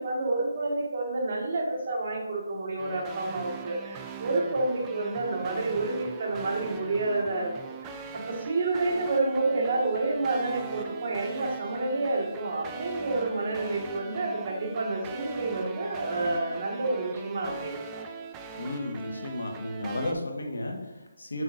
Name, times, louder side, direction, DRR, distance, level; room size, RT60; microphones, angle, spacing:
voice 1, 0.0-18.0, right 2 dB, 50° right, -2 dB, 1.9 m, -29 dB
sound 1, 2.8-20.1, right 5 dB, 15° right, 0.5 m, -41 dB
voice 2, 18.6-21.4, left 1 dB, 80° left, 2 dB, 1.5 m, -33 dB
7.2 x 5.8 x 2.6 m, 1.1 s
figure-of-eight pair, 160°, 0 cm